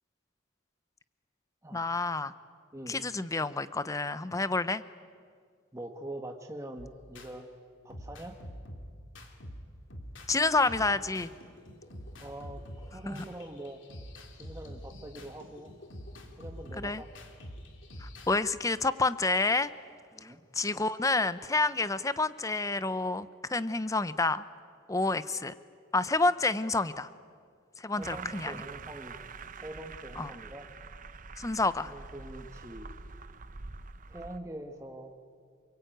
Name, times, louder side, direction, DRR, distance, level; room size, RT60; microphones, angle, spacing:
voice 1, 1.7-2.3 2.9-4.8 10.3-11.3 13.1-13.2 16.7-17.0 18.0-19.7 20.2-24.4 24.9-25.5 25.9-27.1 27.8-28.6 30.2-30.3 31.4-31.9, left 3 dB, 15° left, 14 dB, 0.7 m, -29 dB
voice 2, 5.7-7.5 7.8-8.4 12.2-13.8 14.3-15.7 16.4-17.1 20.1-20.4 27.9-29.1 29.6-30.7 31.8-32.9 34.1-35.1, right 1 dB, 15° right, 3 dB, 1.4 m, -44 dB
sound 1, 6.8-7.3 7.9-10.3 10.6-18.4, equal, 60° left, 3.0 m, -46 dB
sound 2, 28.0-34.4, right 4 dB, 40° right, 0.8 m, -45 dB
28.5 x 22.5 x 9.2 m, 2.1 s
head